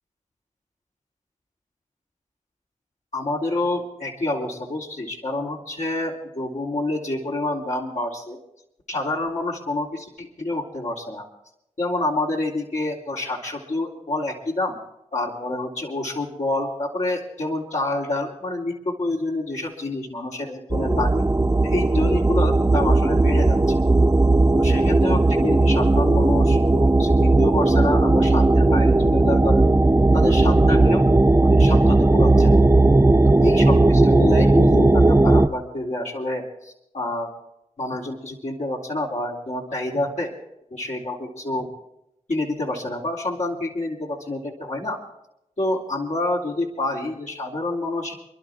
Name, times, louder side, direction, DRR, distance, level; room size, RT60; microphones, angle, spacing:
voice 1, 3.1-8.4 8.9-11.2 11.8-14.8 15.1-21.3 21.6-23.8 24.5-29.7 30.1-31.0 31.4-32.6 33.2-37.3 37.8-40.3 40.7-41.7 42.3-45.0 45.6-48.1, left 2 dB, 65° left, -4 dB, 3.6 m, -28 dB
sound 1, 20.7-35.5, right 2 dB, 20° right, 0.8 m, -17 dB
28.5 x 11.5 x 3.7 m, 0.82 s
cardioid pair, 45°, 13 cm